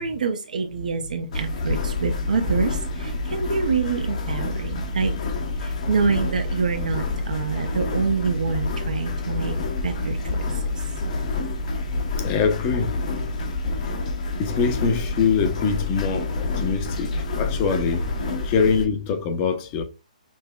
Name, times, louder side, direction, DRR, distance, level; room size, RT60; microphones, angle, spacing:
voice 1, 0.0-5.1 5.6-9.6 9.8-10.9, right 5 dB, 70° right, 0.5 m, -26 dB
sound 1, 0.7-11.9, left 1 dB, 90° right, 0.9 m, -40 dB
sound 2, 1.3-18.9, left 2 dB, 55° left, 0.9 m, -28 dB
voice 2, 12.2-13.5 14.4-18.1 18.4-19.8, left 5 dB, 25° left, 0.6 m, -24 dB
5.3 x 2.1 x 2.2 m
hypercardioid pair, 140°, 4 cm